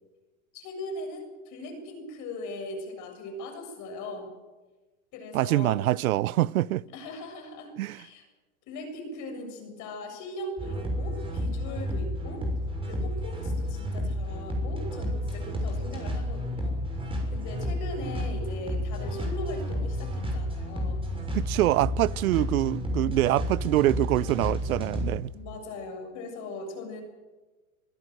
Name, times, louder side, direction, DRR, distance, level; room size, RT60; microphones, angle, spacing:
voice 1, 0.5-4.3 5.1-5.8 6.9-8.3 8.7-12.4 12.9-21.0 21.6-21.7 25.3-27.0, left 2 dB, 45° left, 7.3 m, -39 dB
voice 2, 5.3-6.8 7.8-8.0 21.3-25.3, right 15 dB, 85° right, 0.7 m, -25 dB
sound 1, 10.6-25.2, equal, 10° right, 6.4 m, -31 dB
25.5 x 16.5 x 7.9 m
supercardioid pair, 130°, 42 cm